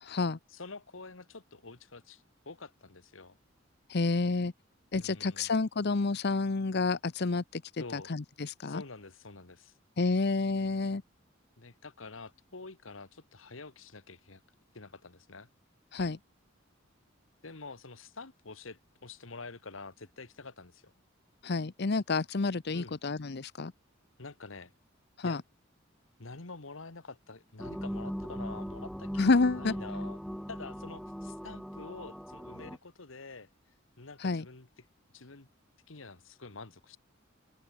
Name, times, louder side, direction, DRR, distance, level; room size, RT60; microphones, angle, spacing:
voice 1, 0.0-0.4 3.9-4.5 4.9-8.8 10.0-11.0 15.9-16.2 21.4-23.7 25.2-25.4 29.2-29.7 34.2-34.5, left 3 dB, 55° left, 0.7 m, -29 dB
voice 2, 0.5-3.4 5.0-5.5 7.8-8.1 8.6-9.7 11.6-14.4 14.7-15.5 17.4-20.9 22.7-22.9 24.2-24.7 25.2-25.4 26.2-29.3 29.6-30.2 30.5-33.5 34.0-34.7 35.1-35.5 35.9-37.0, left 3 dB, 85° left, 1.7 m, -47 dB
sound 1, 27.6-32.8, equal, ahead, 1.5 m, -39 dB
open air
head